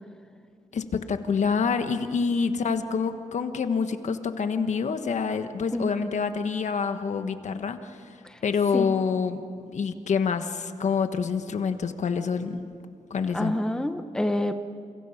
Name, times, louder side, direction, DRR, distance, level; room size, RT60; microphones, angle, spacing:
voice 1, 0.7-8.0 8.4-12.6 13.1-13.5, left 5 dB, 65° left, 8 dB, 1.4 m, -27 dB
voice 2, 13.3-14.5, left 1 dB, 5° left, 7 dB, 0.9 m, -27 dB
30.0 x 28.5 x 5.8 m, 2.3 s
wide cardioid pair, 160°, 13 cm